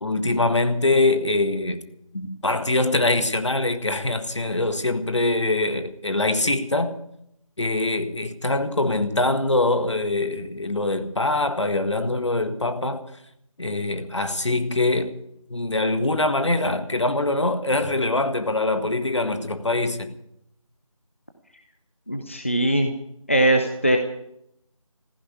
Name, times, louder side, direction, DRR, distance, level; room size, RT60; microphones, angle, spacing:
voice 1, 0.0-1.8 2.1-7.0 7.6-13.0 13.6-15.1 15.5-20.1, left 2 dB, 55° left, 1.7 m, -23 dB
voice 2, 22.1-22.9 23.3-24.0, right 1 dB, 20° left, 0.7 m, -20 dB
15.0 x 10.5 x 8.4 m
figure-of-eight pair, 170°, 18 cm